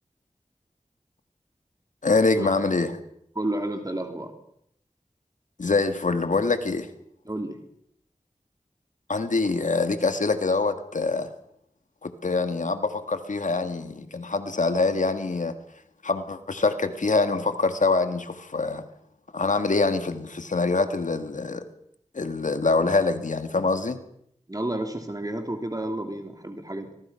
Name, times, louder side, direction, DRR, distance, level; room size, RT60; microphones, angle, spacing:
voice 1, 2.0-3.0 5.6-6.9 9.1-11.3 12.0-15.5 16.0-18.8 19.3-21.7 22.1-24.0, left 3 dB, 85° left, 9 dB, 1.9 m, -24 dB
voice 2, 3.3-4.3 7.2-7.6 24.5-26.9, right 1 dB, 30° right, 5 dB, 3.2 m, -31 dB
25.0 x 22.0 x 5.9 m, 0.72 s
wide cardioid pair, 45°, 13 cm